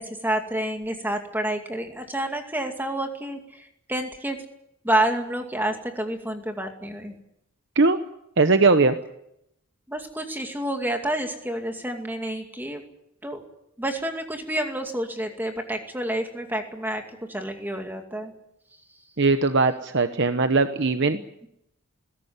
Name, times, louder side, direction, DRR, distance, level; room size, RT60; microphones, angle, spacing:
voice 1, 0.0-4.4 4.8-7.1 9.9-12.8 13.2-13.4 13.8-17.0 17.3-18.3 21.1-21.5, right 1 dB, 10° right, 4 dB, 2.3 m, -29 dB
voice 2, 8.4-9.0 19.2-21.2, right 3 dB, 55° right, 9 dB, 1.0 m, -20 dB
20.5 x 17.0 x 9.5 m, 0.81 s
head